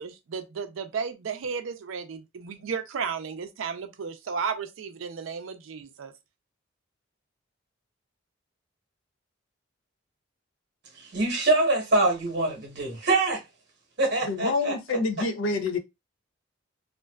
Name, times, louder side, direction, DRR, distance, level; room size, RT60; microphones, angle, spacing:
voice 1, 0.0-6.1, right 6 dB, 80° right, 0.4 m, -34 dB
voice 2, 11.1-13.4 14.0-14.8, right 2 dB, 55° right, 0.9 m, -24 dB
voice 3, 14.3-15.8, left 3 dB, 75° left, 0.4 m, -27 dB
2.5 x 2.2 x 2.3 m
head